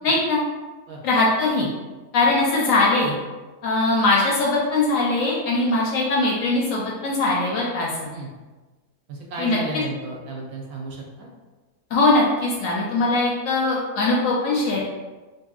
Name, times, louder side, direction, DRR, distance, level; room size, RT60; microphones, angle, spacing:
voice 1, 0.0-0.4 1.0-1.7 2.1-3.1 3.6-8.1 9.4-9.6 11.9-14.9, left 2 dB, 70° left, -4 dB, 0.8 m, -21 dB
voice 2, 9.1-11.3, right 2 dB, 70° right, -2 dB, 1.0 m, -34 dB
2.7 x 2.6 x 2.3 m, 1.2 s
omnidirectional pair, 1.7 m